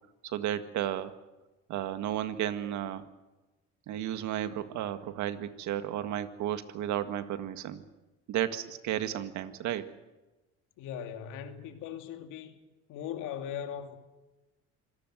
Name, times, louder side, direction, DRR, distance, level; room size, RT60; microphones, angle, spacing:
voice 1, 0.3-1.1 1.7-3.1 3.9-7.8 8.3-9.9, right 11 dB, 70° right, 1.9 m, -33 dB
voice 2, 10.8-12.5 12.9-14.0, left 9 dB, 80° left, 2.6 m, -39 dB
25.5 x 18.0 x 7.9 m
supercardioid pair, 85°, 30 cm